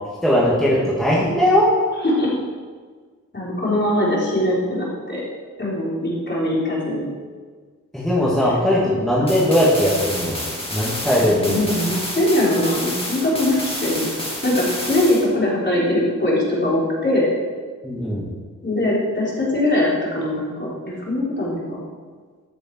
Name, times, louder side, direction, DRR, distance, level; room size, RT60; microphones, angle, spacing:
voice 1, 0.2-1.7 7.9-10.4 10.7-11.6 17.8-18.2, equal, ahead, -7 dB, 2.2 m, -19 dB
voice 2, 2.0-2.3 3.3-5.2 5.6-7.1 8.4-8.6 11.2-14.1 14.4-17.3 18.6-21.8, left 1 dB, 35° left, -6 dB, 3.6 m, -21 dB
sound 1, 9.3-15.3, left 1 dB, 15° left, 2.3 m, -29 dB
13.5 x 6.9 x 4.6 m, 1.5 s
wide cardioid pair, 105°, 33 cm